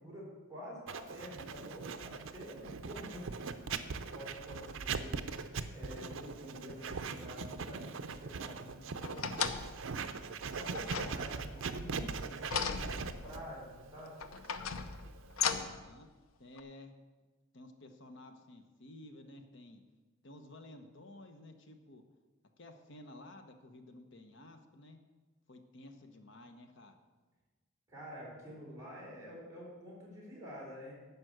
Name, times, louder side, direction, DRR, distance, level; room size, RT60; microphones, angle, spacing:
voice 1, 0.0-9.5 10.5-12.9 13.2-14.2 27.9-30.9, equal, 15° right, -6 dB, 4.0 m, -48 dB
Writing, 0.9-15.6, right 5 dB, 70° right, 0.6 m, -41 dB
sound 1, 9.0-9.9 10.7-11.7 12.4-13.5 14.2-15.9 16.6-16.7, left 6 dB, 90° left, 0.7 m, -37 dB
voice 2, 10.9-11.5 15.5-16.1 16.4-16.9 17.5-19.8 20.2-22.0 22.6-25.0 25.5-27.0 29.2-29.3, left 1 dB, 60° left, 7 dB, 1.0 m, -53 dB
11.0 x 5.1 x 8.0 m, 1.3 s
head